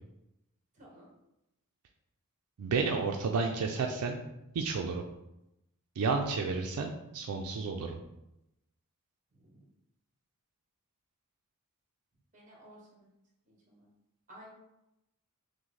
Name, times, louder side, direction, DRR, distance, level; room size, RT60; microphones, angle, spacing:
voice 1, 0.7-1.1 9.3-9.7 12.3-13.1 13.4-13.9 14.3-14.5, right 1 dB, 35° right, -3 dB, 1.3 m, -55 dB
voice 2, 2.6-4.2 4.5-5.0 6.0-8.0, right 4 dB, 80° right, 2 dB, 0.4 m, -31 dB
6.0 x 2.1 x 3.2 m, 0.87 s
head